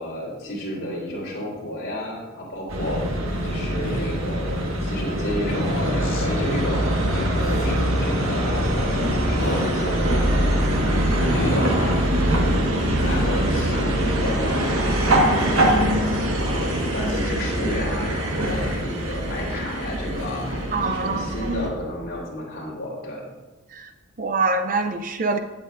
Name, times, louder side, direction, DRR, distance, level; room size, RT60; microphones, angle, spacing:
voice 1, 0.0-3.0 3.4-12.6 13.0-20.4 20.8-23.2, left 1 dB, 50° left, -5 dB, 3.8 m, -31 dB
sound 1, 2.7-21.7, right 1 dB, 80° right, 1.5 m, -23 dB
Speech, 3.8-4.3 5.5-6.3 7.5-8.1 9.4-10.1 11.3-12.0 13.0-13.8 14.8-15.4 16.6-17.3 18.2-19.0 20.2-20.9, left 1 dB, 70° left, 1.4 m, -34 dB
voice 2, 20.7-21.5 23.7-23.9 24.2-25.4, right 3 dB, 40° right, 8 dB, 0.5 m, -25 dB
16.0 x 8.8 x 2.5 m, 1.2 s
head